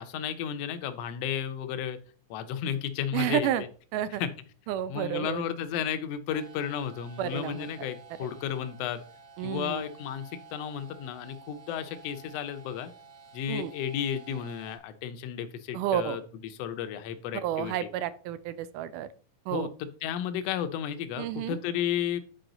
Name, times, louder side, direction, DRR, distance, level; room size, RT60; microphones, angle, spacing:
voice 1, 0.0-2.0 2.3-3.7 4.2-4.3 4.9-9.0 9.4-12.9 13.3-17.9 19.5-19.7 20.0-22.2, left 9 dB, 75° left, 9 dB, 1.5 m, -33 dB
voice 2, 3.1-3.6 3.9-4.2 4.7-5.4 7.2-7.7 9.4-9.8 13.5-13.7 15.7-16.2 17.4-19.1 19.5-19.7 21.2-21.6, right 11 dB, 85° right, 14 dB, 2.1 m, -30 dB
sound 1, 6.3-14.8, right 4 dB, 60° right, 1.7 m, -52 dB
9.0 x 4.9 x 3.8 m, 0.41 s
omnidirectional pair, 3.6 m